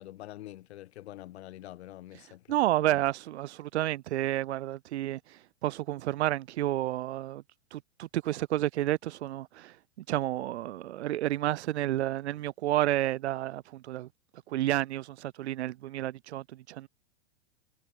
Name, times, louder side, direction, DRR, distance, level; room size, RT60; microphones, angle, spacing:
voice 1, 0.0-2.6 2.9-3.0, left 14 dB, 60° left, 2.1 m, -46 dB
voice 2, 2.5-7.4 7.7-9.8 10.1-14.1 14.5-16.9, right 14 dB, 65° right, 1.4 m, -30 dB
hypercardioid pair, 110°, 36 cm